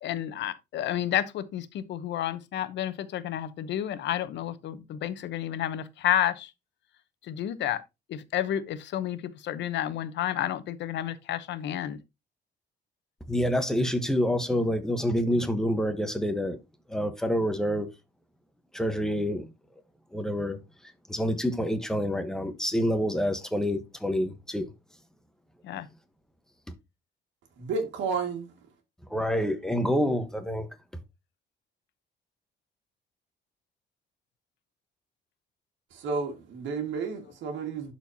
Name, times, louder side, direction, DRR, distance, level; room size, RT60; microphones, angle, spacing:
voice 1, 0.0-6.5 7.2-7.8 8.1-12.0 25.6-25.9, left 11 dB, 75° left, 0.9 m, -30 dB
voice 2, 13.3-16.6 16.9-17.9 18.7-19.5 20.1-20.6 21.1-24.7 29.1-30.7, equal, 5° left, 1.1 m, -27 dB
voice 3, 27.6-28.5 35.9-37.9, right 4 dB, 85° right, 1.9 m, -31 dB
11.5 x 4.4 x 2.8 m
cardioid pair, 130°, 19 cm